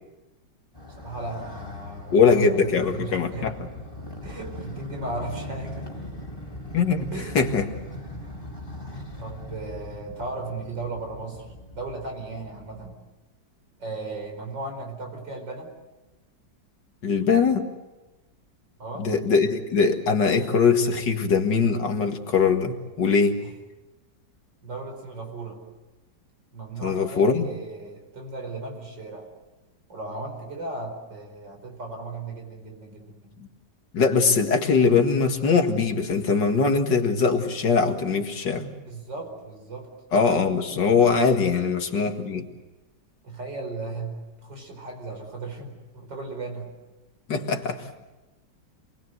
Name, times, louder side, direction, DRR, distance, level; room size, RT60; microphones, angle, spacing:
Motorcycle, 0.7-13.0, left 1 dB, 15° left, 4.3 m, -40 dB
voice 1, 1.0-3.6 4.2-6.0 7.1-7.4 9.2-13.0 13.8-15.7 18.8-19.1 23.4-23.5 24.6-25.6 26.5-29.3 29.9-33.4 38.8-39.9 43.2-46.7, right 2 dB, 85° right, 3 dB, 5.5 m, -36 dB
voice 2, 2.1-3.7 6.7-7.1 7.3-7.7 17.0-17.7 19.0-23.4 26.8-27.5 33.9-38.7 40.1-42.5 47.3-47.8, left 5 dB, 75° left, 5 dB, 2.5 m, -21 dB
27.5 x 21.0 x 7.9 m, 1.1 s
omnidirectional pair, 1.9 m